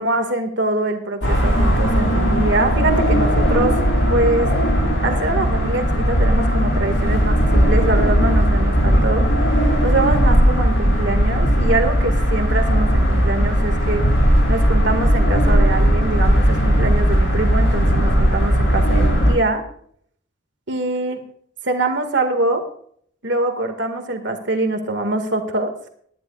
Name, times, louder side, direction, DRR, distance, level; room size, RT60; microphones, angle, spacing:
voice 1, 0.0-3.8 4.1-4.5 5.0-9.3 9.8-14.0 14.5-19.6 20.7-21.2 21.6-22.6 23.2-25.9, right 2 dB, 65° right, 6 dB, 1.9 m, -23 dB
sound 1, 1.2-19.3, equal, 85° left, 6.4 m, -17 dB
18.5 x 11.5 x 2.4 m, 0.63 s
head